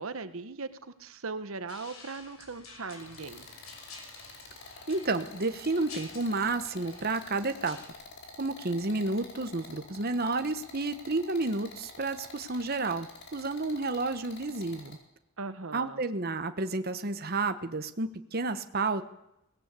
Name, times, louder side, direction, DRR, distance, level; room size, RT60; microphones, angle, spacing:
voice 1, 0.0-3.4 15.4-16.0, right 4 dB, 75° right, 12 dB, 1.1 m, -39 dB
sound 1, 1.7-7.9, left 3 dB, 85° left, 6.4 m, -50 dB
sound 2, 2.9-14.9, left 3 dB, 55° left, 4.9 m, -48 dB
voice 2, 4.9-7.8 8.4-15.0 15.7-19.0, right 3 dB, 45° right, 8 dB, 1.2 m, -31 dB
22.5 x 18.0 x 8.3 m, 0.87 s
head